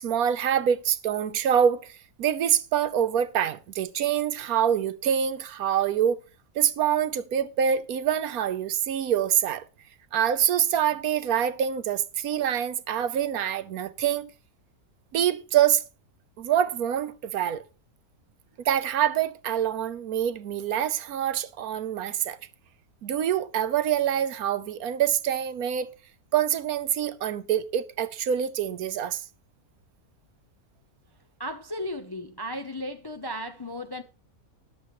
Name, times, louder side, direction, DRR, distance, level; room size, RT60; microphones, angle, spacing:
voice 1, 0.0-1.9 2.2-6.2 6.5-9.6 10.1-14.3 15.1-15.8 16.4-17.6 18.6-22.4 23.0-25.9 26.3-29.2, right 9 dB, 70° right, 1.2 m, -25 dB
voice 2, 31.4-34.0, equal, 25° left, 0.5 m, -35 dB
13.5 x 11.0 x 3.1 m
omnidirectional pair, 1.6 m